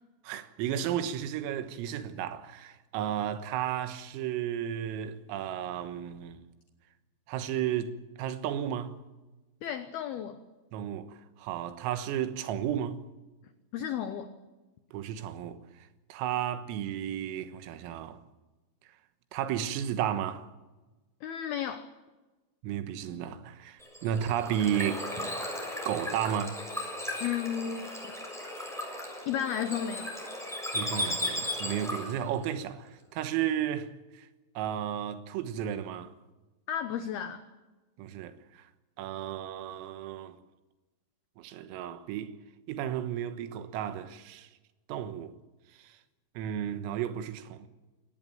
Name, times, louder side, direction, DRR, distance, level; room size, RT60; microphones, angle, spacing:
voice 1, 0.3-6.4 7.3-7.9 8.2-8.9 10.7-13.0 14.9-15.6 16.1-18.2 19.3-20.5 22.6-25.1 25.9-26.6 30.7-34.3 34.6-36.1 38.0-38.4 39.0-40.4 41.4-42.3 42.7-44.5 44.9-45.3 46.4-47.7, right 10 dB, 85° right, 3.9 m, -33 dB
voice 2, 9.6-10.4 13.7-14.3 21.2-21.9 27.2-28.1 29.3-30.1 36.7-37.4, left 9 dB, 85° left, 2.1 m, -33 dB
Bird / Water, 23.8-32.2, left 1 dB, ahead, 6.3 m, -36 dB
22.0 x 18.5 x 9.0 m
omnidirectional pair, 6.0 m